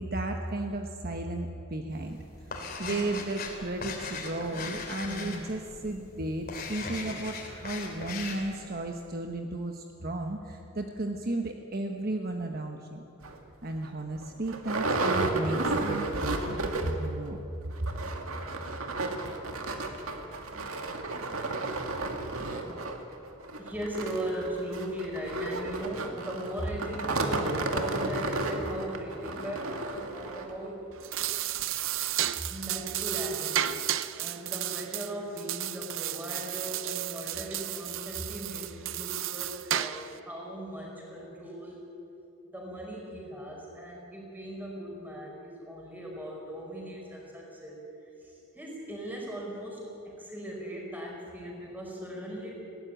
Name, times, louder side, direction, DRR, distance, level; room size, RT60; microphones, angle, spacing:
voice 1, 0.0-13.0 13.6-17.4 17.6-18.0, right 2 dB, 45° right, 3 dB, 1.1 m, -34 dB
sound 1, 1.9-8.5, left 3 dB, 45° left, 3.3 m, -39 dB
sound 2, 13.2-13.4 13.8-13.9 14.1-17.1 17.4-17.5 17.7-30.5 31.1-31.2 31.6-31.7, right 2 dB, 85° right, 2.1 m, -32 dB
voice 2, 23.6-30.9 32.5-33.7 34.2-41.9 42.5-47.8 48.2-52.5, equal, 10° right, -2 dB, 5.1 m, -38 dB
sound 3, 30.9-40.2, right 12 dB, 65° right, 0.6 m, -33 dB
20.5 x 17.0 x 9.2 m, 2.9 s
head